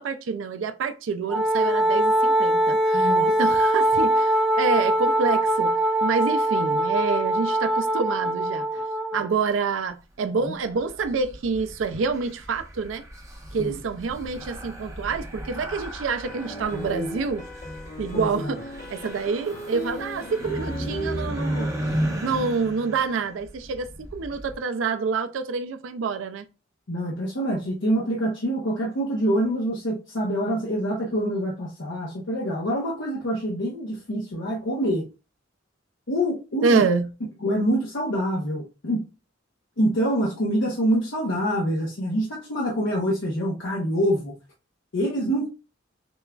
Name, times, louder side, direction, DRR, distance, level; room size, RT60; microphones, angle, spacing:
voice 1, 0.0-8.8 9.1-13.0 13.5-17.4 18.0-26.4 36.6-37.1, right 4 dB, 90° right, 0.4 m, -27 dB
Wind instrument woodwind instrument, 1.3-9.3, right 1 dB, ahead, 0.5 m, -22 dB
voice 2, 2.9-3.3 10.5-10.6 13.6-13.8 18.1-18.5 26.9-35.1 36.1-36.9 37.4-39.1 39.8-44.3 44.9-45.5, equal, 70° left, 0.8 m, -26 dB
sound 1, 10.7-24.6, equal, 15° right, 0.9 m, -35 dB
sound 2, 16.2-21.7, equal, 40° left, 0.9 m, -36 dB
6.8 x 2.4 x 2.3 m
head